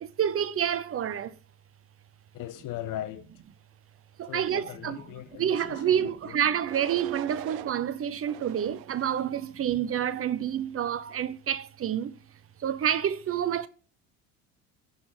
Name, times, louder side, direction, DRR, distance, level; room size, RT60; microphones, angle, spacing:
voice 1, 0.0-1.3 4.2-5.0 5.4-12.1 12.6-13.7, right 9 dB, 35° right, 0.7 m, -28 dB
voice 2, 2.3-3.3 4.3-6.4, left 12 dB, 55° left, 1.1 m, -39 dB
sound 1, 5.7-6.1 6.6-7.7 8.3-9.3 9.9-10.3, right 16 dB, 70° right, 0.8 m, -44 dB
11.0 x 4.1 x 7.7 m
supercardioid pair, 85°, 38 cm